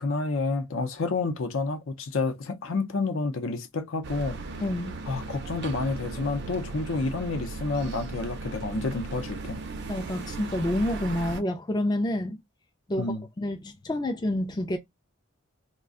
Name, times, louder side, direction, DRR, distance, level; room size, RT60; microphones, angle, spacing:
voice 1, 0.0-4.4 5.1-9.6 13.0-13.2, left 3 dB, 65° left, 0.6 m, -29 dB
sound 1, 4.0-11.4, right 3 dB, 55° right, 0.5 m, -37 dB
voice 2, 4.6-5.0 9.9-12.4 12.9-14.8, left 1 dB, 20° left, 0.4 m, -28 dB
2.4 x 2.2 x 3.6 m
head